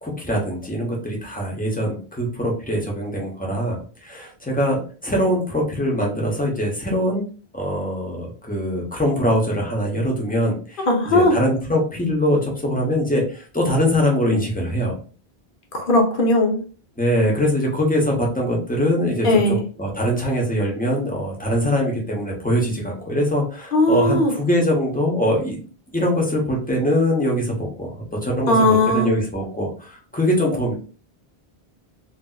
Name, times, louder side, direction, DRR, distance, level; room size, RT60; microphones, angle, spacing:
voice 1, 0.0-7.2 7.5-15.0 17.0-25.6 25.9-30.7, equal, 10° left, -1 dB, 0.8 m, -22 dB
voice 2, 10.9-11.4 15.7-16.6 19.2-19.6 23.7-24.3 28.5-29.1, left 1 dB, 60° left, 2 dB, 1.0 m, -17 dB
3.3 x 2.6 x 2.3 m, 0.39 s
omnidirectional pair, 1.0 m